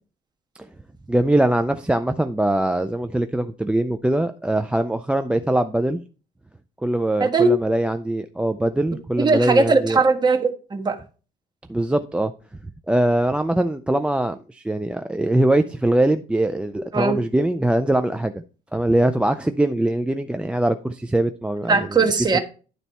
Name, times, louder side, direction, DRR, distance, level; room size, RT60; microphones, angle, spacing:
voice 1, 1.1-6.0 6.8-10.0 11.7-12.3 12.9-18.3 18.7-22.0 22.3-22.4, right 1 dB, 5° right, 0.4 m, -22 dB
voice 2, 7.2-7.5 9.2-11.0 16.9-17.2 21.7-22.4, right 4 dB, 25° right, 1.5 m, -19 dB
11.0 x 4.0 x 4.3 m
cardioid pair, 110°, 17 cm